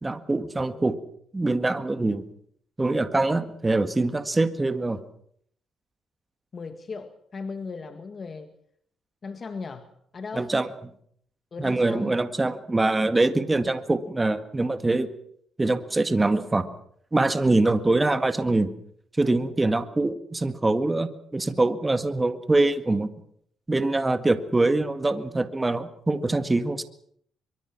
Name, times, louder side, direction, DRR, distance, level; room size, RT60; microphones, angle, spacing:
voice 1, 0.0-1.0 1.3-2.3 2.8-5.0 10.4-10.7 11.6-15.1 15.6-16.7 17.1-18.7 19.2-23.1 23.7-26.8, right 2 dB, 20° right, 10 dB, 1.8 m, -24 dB
voice 2, 6.5-8.5 9.2-10.5 11.5-12.2 19.5-19.7, left 4 dB, 40° left, 8 dB, 1.9 m, -37 dB
23.5 x 23.0 x 6.0 m, 0.67 s
cardioid pair, 90°, 0 cm